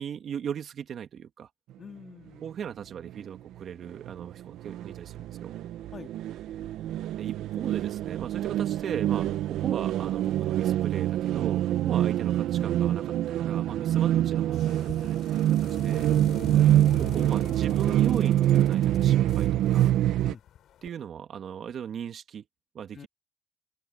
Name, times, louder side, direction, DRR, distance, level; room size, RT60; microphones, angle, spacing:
voice 1, 0.0-1.5 2.4-5.6 7.2-16.1 17.0-19.9 20.8-22.4 22.7-23.1, right 8 dB, 60° right, 2.4 m, -38 dB
voice 2, 1.8-2.4 5.9-6.1 12.0-12.1 16.4-17.1 20.2-20.4 22.9-23.1, left 6 dB, 45° left, 2.4 m, -46 dB
sound 1, 3.1-3.2 3.6-3.7 4.0-20.3, right 12 dB, 85° right, 0.7 m, -25 dB
sound 2, 14.4-20.9, left 10 dB, 75° left, 6.0 m, -45 dB
open air
cardioid pair, 90°, 0 cm